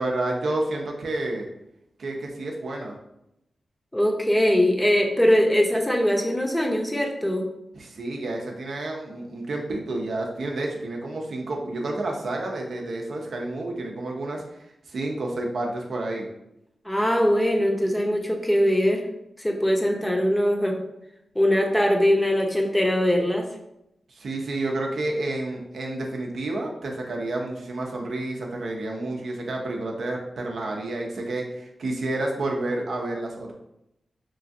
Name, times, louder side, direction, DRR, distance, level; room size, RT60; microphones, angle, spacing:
voice 1, 0.0-1.5 2.0-2.9 7.7-14.4 14.9-16.3 24.1-33.5, right 2 dB, 80° right, 0 dB, 0.5 m, -30 dB
voice 2, 3.9-7.5 16.8-19.0 19.4-20.8 21.4-23.5, equal, 15° left, 1 dB, 0.6 m, -21 dB
3.0 x 2.4 x 2.5 m, 0.84 s
cardioid pair, 55°, 0 cm